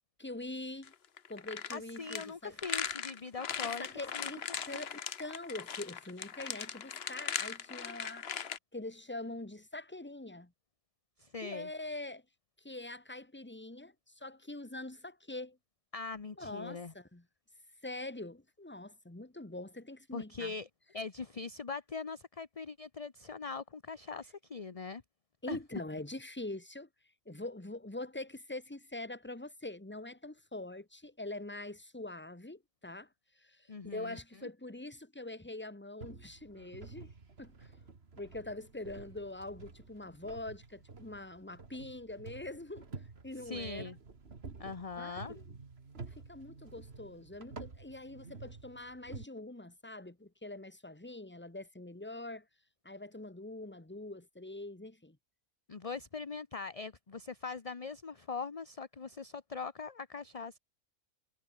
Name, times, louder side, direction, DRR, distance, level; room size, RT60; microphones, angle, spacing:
voice 1, 0.2-0.9 1.3-2.6 3.6-8.3 8.7-10.5 11.4-12.2 12.6-15.6 16.4-17.2 17.8-20.5 25.4-26.9 27.2-33.1 33.4-37.1 37.4-37.8 38.2-42.9 43.2-43.9 45.0-45.6 46.2-52.4 52.8-55.2, left 2 dB, 10° left, 1.5 m, -44 dB
sound 1, 0.8-8.6, left 7 dB, 45° left, 1.1 m, -39 dB
voice 2, 1.7-3.9 4.1-4.3 4.7-4.8 11.2-11.7 15.9-16.9 20.1-20.7 20.9-25.0 25.5-25.6 33.7-34.2 43.4-44.0 44.6-45.4 55.7-60.6, left 4 dB, 30° left, 0.9 m, -41 dB
sound 2, 36.0-49.3, right 4 dB, 45° right, 2.2 m, -50 dB
omnidirectional pair, 1.6 m